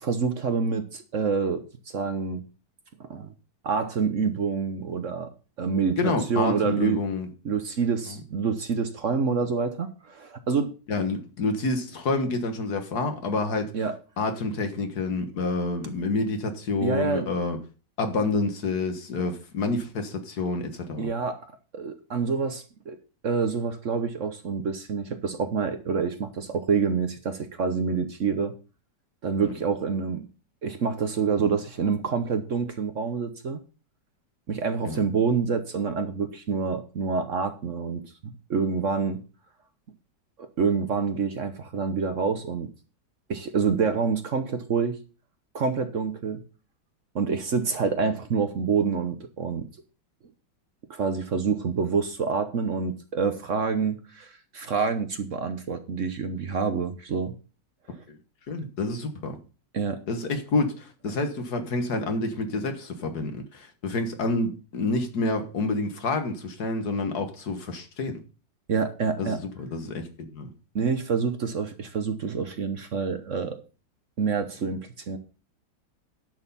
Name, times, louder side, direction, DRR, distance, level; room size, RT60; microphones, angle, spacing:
voice 1, 0.0-2.4 3.1-3.3 3.6-5.3 5.6-7.0 7.4-10.7 13.7-13.9 16.8-17.3 21.0-21.4 21.7-23.0 23.2-28.5 29.2-30.3 30.6-33.6 34.5-39.2 40.6-42.7 43.3-45.0 45.5-46.4 47.1-49.7 50.9-57.3 59.7-60.0 68.7-69.4 70.7-73.6 74.2-75.2, right 5 dB, 50° right, 1.1 m, -27 dB
voice 2, 6.0-7.3 8.1-8.2 10.9-13.7 14.2-17.6 18.0-21.1 34.8-35.0 58.5-59.4 60.1-68.2 69.2-70.5, left 3 dB, 65° left, 1.9 m, -28 dB
10.5 x 6.5 x 5.5 m
omnidirectional pair, 1.9 m